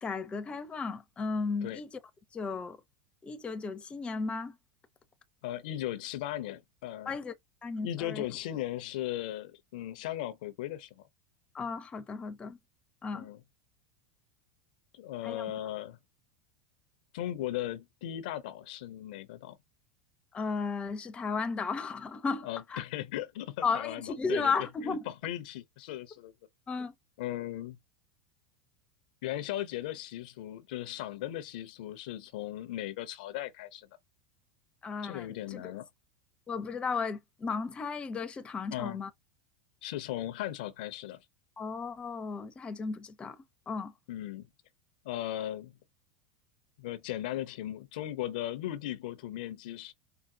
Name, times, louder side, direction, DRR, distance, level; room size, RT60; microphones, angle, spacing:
voice 1, 0.0-1.9 2.3-2.8 3.2-4.5 7.1-7.3 7.6-8.2 11.5-12.6 13.0-13.3 15.2-15.4 20.3-22.8 23.6-25.0 26.7-26.9 34.8-35.6 36.5-39.1 41.6-43.4 43.7-43.9, left 4 dB, 20° left, 0.7 m, -34 dB
voice 2, 5.4-7.1 7.8-11.1 13.1-13.4 14.9-16.0 17.1-19.6 22.4-26.3 27.2-27.8 29.2-33.9 35.0-35.9 38.7-39.0 39.8-41.2 44.1-44.5 45.0-45.7 46.8-49.9, left 13 dB, 70° left, 0.7 m, -37 dB
4.8 x 2.2 x 2.7 m
hypercardioid pair, 100°, 5 cm